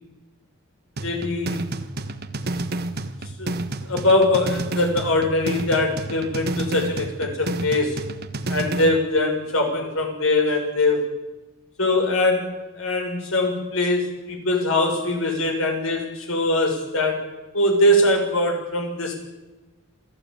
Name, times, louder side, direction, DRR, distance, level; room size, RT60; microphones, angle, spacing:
voice 1, 1.0-1.7 3.4-3.5 3.8-8.0 8.5-11.1 11.8-17.2 17.5-19.2, left 2 dB, 75° left, 3 dB, 6.5 m, -22 dB
sound 1, 1.0-9.0, right 2 dB, 50° right, 1.5 m, -30 dB
28.0 x 15.0 x 8.9 m, 1.1 s
head